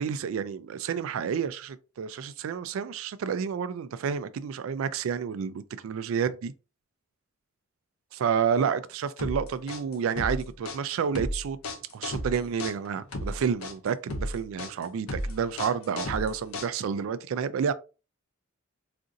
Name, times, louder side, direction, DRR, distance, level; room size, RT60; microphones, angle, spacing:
voice 1, 0.0-6.5 8.1-11.6 11.9-17.7, right 7 dB, 70° right, 0.3 m, -30 dB
sound 1, 9.2-17.0, left 1 dB, 85° left, 0.7 m, -34 dB
3.9 x 2.5 x 2.5 m
head